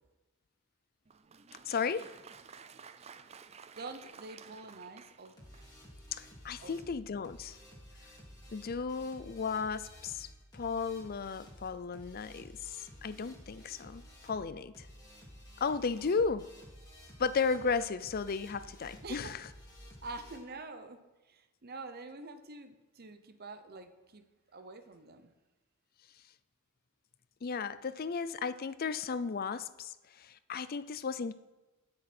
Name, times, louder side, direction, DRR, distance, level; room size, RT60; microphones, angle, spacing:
Applause, 1.0-5.9, right 6 dB, 30° right, 0.4 m, -53 dB
voice 1, 1.6-2.1 6.1-7.6 8.5-10.3 10.5-14.9 15.6-16.5 17.2-19.5 27.4-31.3, left 5 dB, 45° left, 14 dB, 0.4 m, -34 dB
voice 2, 3.7-5.3 6.6-7.0 19.0-19.4 20.0-21.0 21.2-24.2 24.5-25.3, right 3 dB, 45° right, 9 dB, 0.9 m, -46 dB
sound 1, 5.4-20.4, equal, 20° left, 2.7 m, -53 dB
19.0 x 6.5 x 4.4 m, 1.1 s
head